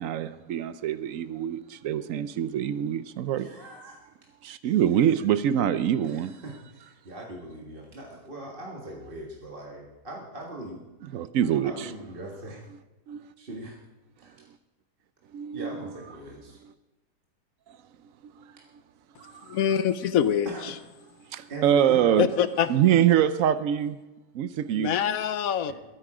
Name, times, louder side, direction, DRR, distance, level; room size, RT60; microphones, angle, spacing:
voice 1, 0.0-3.5 4.4-6.3 11.1-11.9 13.1-13.3 15.3-15.8 19.2-19.6 21.3-22.3 22.7-24.0 24.3-24.9, right 10 dB, 75° right, 0.7 m, -25 dB
voice 2, 3.3-4.0 6.0-10.8 11.6-12.6 13.4-13.8 14.2-14.4 15.5-16.6 20.4-20.7 21.5-22.1 22.6-22.8, right 1 dB, 30° right, 1.8 m, -40 dB
voice 3, 19.5-20.7 22.2-22.7 24.7-25.7, left 9 dB, 65° left, 0.9 m, -25 dB
21.5 x 9.1 x 4.9 m
omnidirectional pair, 2.0 m